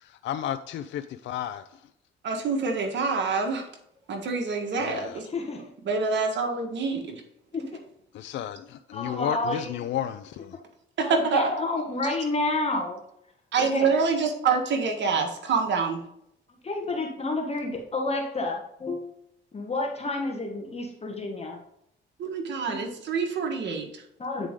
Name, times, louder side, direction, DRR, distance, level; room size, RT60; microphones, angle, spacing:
voice 1, 0.2-1.6 4.9-5.0 8.2-8.6 8.9-10.4, left 10 dB, 70° left, 0.4 m, -31 dB
voice 2, 2.2-3.7 4.1-5.3 5.8-7.2 11.0-11.5 13.5-16.0 22.2-24.0, right 4 dB, 65° right, 1.6 m, -26 dB
voice 3, 5.3-5.7 7.5-7.8 8.9-9.9 11.0-13.0 13.6-13.9 16.6-19.1 19.5-21.6 22.6-22.9 24.2-24.5, left 2 dB, 30° left, 1.5 m, -30 dB
8.9 x 4.8 x 3.7 m
cardioid pair, 90°, 20 cm